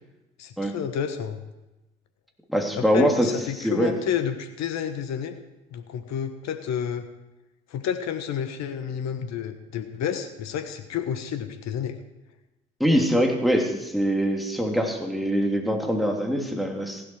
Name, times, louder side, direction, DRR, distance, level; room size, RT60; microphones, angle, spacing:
voice 1, 0.4-1.4 2.7-5.4 5.7-7.1 7.7-12.0, left 8 dB, 65° left, 9 dB, 1.3 m, -30 dB
voice 2, 2.5-3.3 3.6-3.9 12.8-17.0, equal, ahead, 1 dB, 3.2 m, -23 dB
16.0 x 11.5 x 4.8 m, 1.0 s
hypercardioid pair, 45°, 30 cm